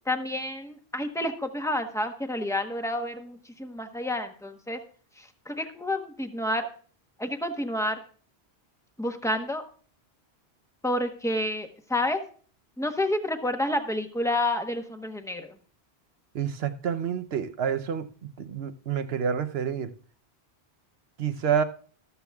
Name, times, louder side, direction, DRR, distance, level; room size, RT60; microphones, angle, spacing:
voice 1, 0.1-4.8 5.5-6.7 7.2-8.0 9.0-9.6 10.8-12.2 12.8-15.5, left 1 dB, 5° left, 6 dB, 1.0 m, -29 dB
voice 2, 16.3-18.1 18.4-19.9 21.2-21.6, right 7 dB, 70° right, 9 dB, 1.0 m, -28 dB
14.0 x 13.0 x 2.3 m, 0.42 s
omnidirectional pair, 1.1 m